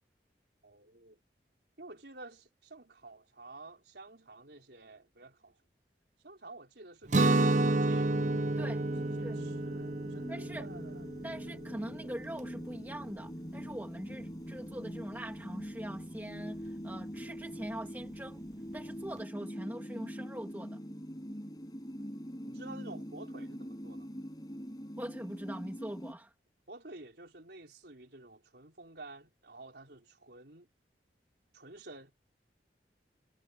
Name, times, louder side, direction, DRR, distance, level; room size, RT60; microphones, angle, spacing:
voice 1, 0.6-1.2 1.8-5.6 6.2-8.1 9.0-11.6 22.4-24.1 26.7-30.7 31.5-32.1, right 2 dB, 70° right, 3.9 m, -51 dB
sound 1, 7.1-26.1, equal, 20° left, 6.0 m, -44 dB
Guitar, 7.1-12.9, right 2 dB, 45° right, 0.6 m, -30 dB
voice 2, 10.3-10.7 11.2-18.4 18.7-20.8 25.0-26.3, right 1 dB, 10° right, 2.3 m, -42 dB
head